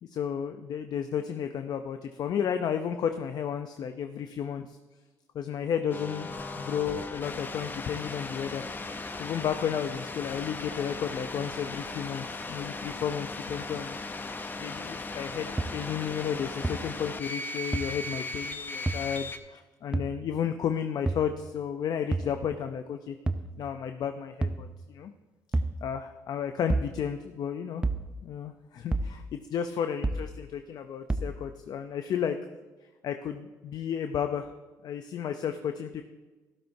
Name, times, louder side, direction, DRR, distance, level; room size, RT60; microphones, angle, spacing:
voice 1, 0.0-4.8 5.3-8.7 9.2-14.0 14.6-23.2 23.6-25.1 25.8-27.8 28.2-32.4 33.0-34.5 34.8-36.0, left 8 dB, 65° left, 7 dB, 0.6 m, -33 dB
sound 1, 5.9-19.4, left 3 dB, 25° left, 0.7 m, -37 dB
sound 2, 15.6-15.7 16.6-16.7 17.7-17.8 18.9-19.0 19.9-20.1 21.1-21.3 22.1-22.3 23.3-23.5 24.4-24.6 25.5-25.8 26.7-26.9 27.8-28.0 28.9-29.1 30.0-30.3 31.1-31.3, right 2 dB, 15° right, 0.6 m, -28 dB
12.5 x 12.0 x 2.7 m, 1.2 s
cardioid pair, 80°, 7 cm